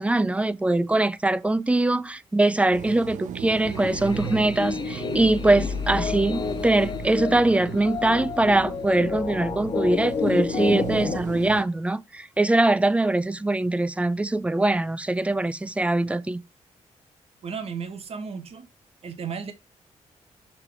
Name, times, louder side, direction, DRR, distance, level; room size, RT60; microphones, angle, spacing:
voice 1, 0.0-16.4, right 2 dB, 10° right, 0.4 m, -22 dB
sound 1, 2.7-11.6, right 10 dB, 80° right, 0.4 m, -37 dB
sound 2, 3.6-11.2, left 6 dB, 35° left, 0.6 m, -30 dB
voice 2, 17.4-18.7 19.0-19.5, right 6 dB, 50° right, 1.1 m, -34 dB
6.6 x 3.7 x 4.6 m
wide cardioid pair, 125°, 13 cm